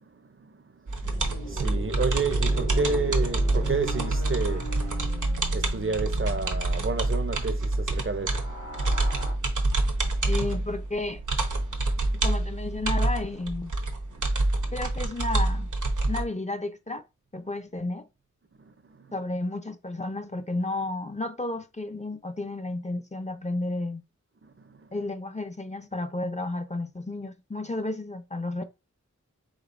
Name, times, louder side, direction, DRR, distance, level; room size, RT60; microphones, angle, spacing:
voice 1, 0.0-10.3 11.7-12.3 14.1-14.4 14.6-14.7 18.6-19.1 24.4-25.0, right 4 dB, 45° right, 0.6 m, -33 dB
sound 1, 0.9-16.2, right 2 dB, 75° right, 1.0 m, -27 dB
sound 2, 1.0-7.0 8.1-9.3, right 1 dB, 65° left, 2.3 m, -38 dB
voice 2, 10.3-11.2 12.2-13.7 14.7-15.7 16.1-17.0 17.3-18.1 19.1-24.0 24.9-28.6, left 2 dB, 25° left, 0.6 m, -32 dB
5.0 x 3.6 x 2.6 m
wide cardioid pair, 70°, 30 cm